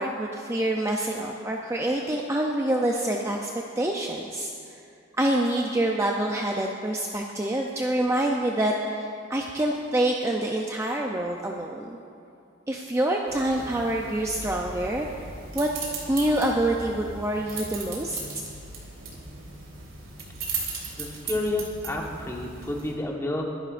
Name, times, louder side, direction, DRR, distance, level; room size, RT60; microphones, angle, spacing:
voice 1, 0.0-3.5 3.8-4.5 5.2-12.0 12.7-15.1 15.5-15.7 16.1-18.2, right 1 dB, 15° right, 0 dB, 0.5 m, -26 dB
sound 1, 13.3-22.9, right 4 dB, 75° right, 3.6 m, -38 dB
voice 2, 21.0-23.5, left 1 dB, 15° left, -1 dB, 1.4 m, -30 dB
23.5 x 11.5 x 2.5 m, 2.4 s
head